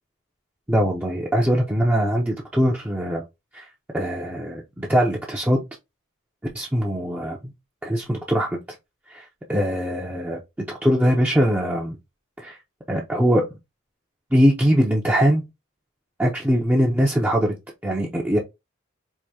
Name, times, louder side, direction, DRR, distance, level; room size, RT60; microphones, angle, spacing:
voice 1, 0.7-3.2 3.5-3.6 3.9-5.6 6.5-7.4 7.8-8.6 9.1-10.4 10.8-12.0 12.4-12.6 12.9-13.4 14.3-15.4 16.2-17.5 17.8-18.4, equal, 10° right, 0.6 m, -21 dB
4.7 x 2.7 x 2.7 m
head